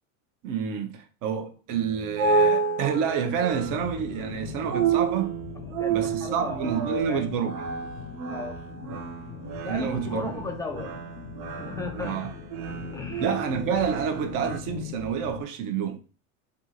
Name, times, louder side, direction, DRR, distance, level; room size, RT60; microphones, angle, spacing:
voice 1, 0.4-5.3 5.9-7.6 9.7-10.3 12.0-12.3 13.2-16.0, right 7 dB, 45° right, 0.7 m, -28 dB
sound 1, 1.7-14.6, right 5 dB, 85° right, 0.9 m, -30 dB
sound 2, 3.5-15.4, left 11 dB, 50° left, 0.5 m, -41 dB
voice 2, 5.5-7.3 8.2-8.6 9.6-11.0 11.5-12.3 12.9-13.4, left 3 dB, 10° left, 0.6 m, -37 dB
3.5 x 2.5 x 2.8 m
supercardioid pair, 105°, 44 cm